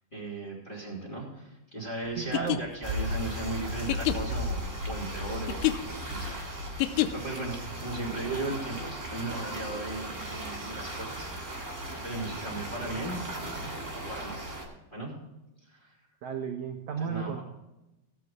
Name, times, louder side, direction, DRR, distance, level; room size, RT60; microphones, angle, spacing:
voice 1, 0.1-13.2 14.1-14.5 14.9-15.1 15.7-15.9 17.0-17.4, right 2 dB, 15° left, -3 dB, 2.4 m, -37 dB
sound 1, 2.2-7.4, left 15 dB, 85° left, 2.7 m, -30 dB
voice 2, 2.2-2.6 16.2-17.4, right 7 dB, 75° right, 3 dB, 1.7 m, -34 dB
sound 2, 2.8-14.6, right 1 dB, 20° right, 2.7 m, -36 dB
17.5 x 8.3 x 3.6 m, 0.96 s
omnidirectional pair, 4.5 m